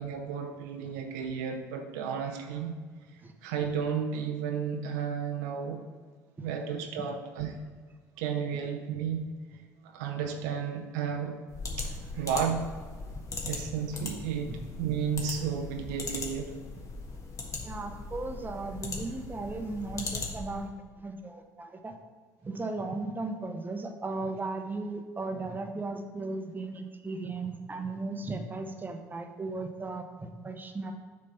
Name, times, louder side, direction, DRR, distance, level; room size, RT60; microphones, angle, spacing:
voice 1, 0.0-2.7 3.4-5.8 6.4-7.6 8.2-9.3 9.8-11.4 11.8-12.7 13.4-16.5, right 7 dB, 75° right, 4 dB, 0.7 m, -33 dB
sound 1, 11.5-20.6, left 3 dB, 40° left, 1.5 m, -39 dB
voice 2, 17.6-21.9 22.4-30.9, right 3 dB, 20° right, 5 dB, 0.9 m, -36 dB
7.3 x 3.3 x 5.5 m, 1.5 s
hypercardioid pair, 65°, 9 cm